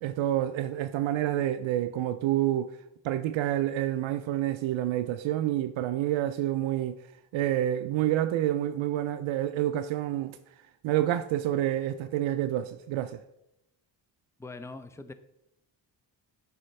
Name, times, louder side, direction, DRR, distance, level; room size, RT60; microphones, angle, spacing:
voice 1, 0.0-2.8 3.0-7.0 7.3-10.4 10.8-13.2, right 12 dB, 75° right, 0.5 m, -28 dB
voice 2, 14.4-15.1, left 3 dB, 5° left, 0.5 m, -42 dB
8.3 x 5.6 x 3.2 m
cardioid pair, 65°, 48 cm